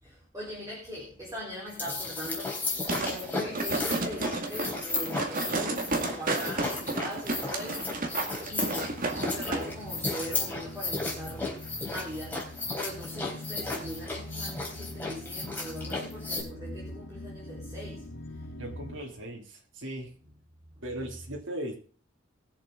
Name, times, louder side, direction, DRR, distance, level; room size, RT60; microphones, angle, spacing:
voice 1, 0.0-8.9 9.2-12.4 12.7-18.6, equal, 20° right, 4.0 m, -41 dB
sound 1, 1.7-16.4, left 3 dB, 10° left, 3.9 m, -34 dB
sound 2, 2.6-19.0, left 1 dB, 80° left, 1.3 m, -45 dB
sound 3, 2.9-9.6 10.0-10.1, right 2 dB, 45° right, 2.1 m, -32 dB
voice 2, 18.6-20.1 20.8-21.7, right 1 dB, 70° right, 3.0 m, -38 dB
21.0 x 7.3 x 3.8 m
head